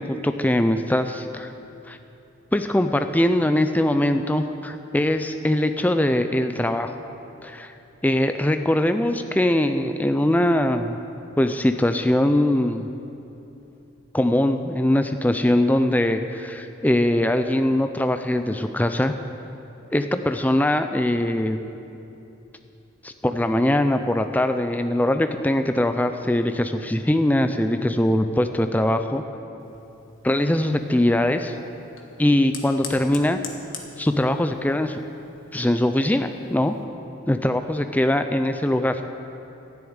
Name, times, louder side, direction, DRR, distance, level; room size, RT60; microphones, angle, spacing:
voice 1, 0.0-1.5 1.9-2.0 2.5-6.9 7.4-7.7 8.0-11.0 11.4-12.9 14.1-19.1 19.9-21.6 23.0-29.2 30.2-31.5 32.2-33.4 34.0-35.0 35.5-36.8 37.3-39.0, left 1 dB, 10° left, 8 dB, 0.4 m, -22 dB
Fire, 29.6-36.8, left 6 dB, 70° left, 1.4 m, -44 dB
12.5 x 7.1 x 9.5 m, 2.9 s
head